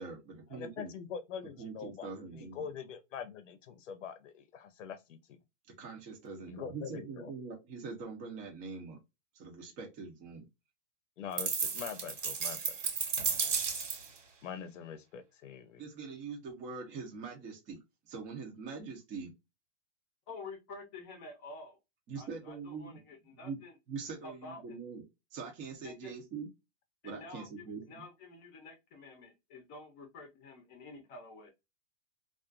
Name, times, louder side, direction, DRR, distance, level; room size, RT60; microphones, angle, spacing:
voice 1, 0.0-0.9 1.6-2.7 5.8-9.0 9.3-10.4 15.8-17.8 18.0-19.3 22.1-23.0 23.4-23.6 23.9-25.0 25.3-26.5 27.0-28.0, right 4 dB, 20° right, 0.6 m, -43 dB
voice 2, 0.5-5.4 6.5-7.3 11.2-12.8 14.4-15.8, left 7 dB, 90° left, 0.7 m, -44 dB
sound 1, 11.4-14.2, right 6 dB, 90° right, 1.2 m, -33 dB
voice 3, 20.3-21.8 22.2-23.7 24.2-24.7 25.8-26.1 27.0-31.5, left 3 dB, 25° left, 0.6 m, -49 dB
2.4 x 2.4 x 2.3 m
hypercardioid pair, 150°, 36 cm